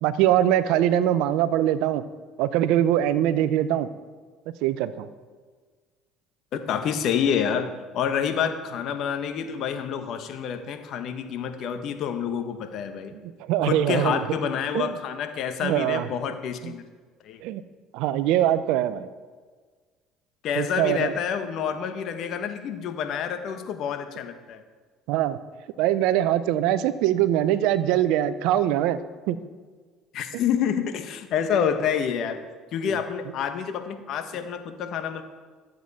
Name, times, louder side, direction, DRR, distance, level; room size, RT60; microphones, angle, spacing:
voice 1, 0.0-2.0 2.4-3.9 4.6-5.1 13.1-14.3 14.7-14.9 15.6-16.1 16.6-16.7 17.4-17.6 17.9-19.1 20.6-21.1 25.1-25.4 25.8-29.0 29.3-29.4, right 12 dB, 75° right, 14 dB, 0.6 m, -22 dB
voice 2, 6.5-13.1 13.6-16.8 17.2-17.4 20.4-24.6 30.1-32.4 32.7-35.2, left 8 dB, 60° left, 7 dB, 1.2 m, -28 dB
13.0 x 7.8 x 4.2 m, 1.5 s
hypercardioid pair, 75°, 0 cm